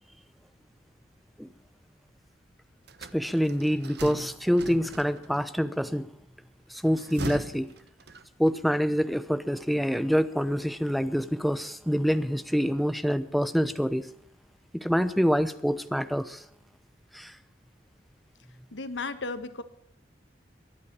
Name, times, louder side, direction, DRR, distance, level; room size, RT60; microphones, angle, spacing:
sound 1, 2.9-5.4 6.8-8.6, right 2 dB, 65° right, 1.1 m, -40 dB
voice 1, 3.1-6.1 6.7-7.7 8.4-14.1 14.7-16.4 17.1-17.3, equal, ahead, 12 dB, 0.9 m, -26 dB
voice 2, 18.7-19.6, left 3 dB, 90° left, 11 dB, 1.5 m, -34 dB
23.0 x 8.7 x 6.8 m, 0.71 s
head